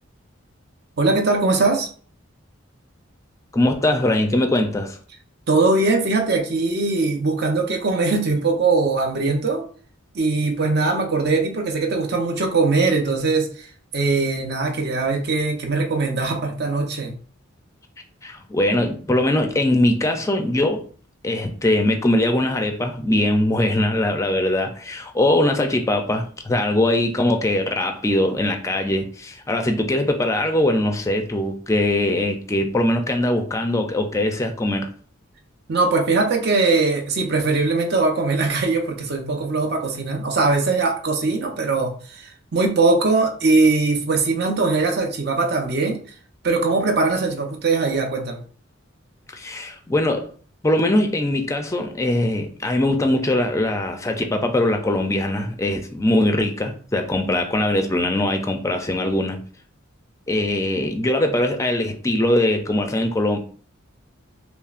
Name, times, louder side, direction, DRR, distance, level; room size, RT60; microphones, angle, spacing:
voice 1, 1.0-1.9 5.5-9.6 10.1-13.5 13.9-17.1 35.7-46.0 46.4-48.4, right 3 dB, 50° right, 0.7 m, -21 dB
voice 2, 3.5-5.0 18.2-20.8 21.2-34.9 49.3-50.3 50.6-59.4 60.3-63.4, left 1 dB, 15° left, 0.4 m, -21 dB
5.4 x 2.0 x 2.4 m
head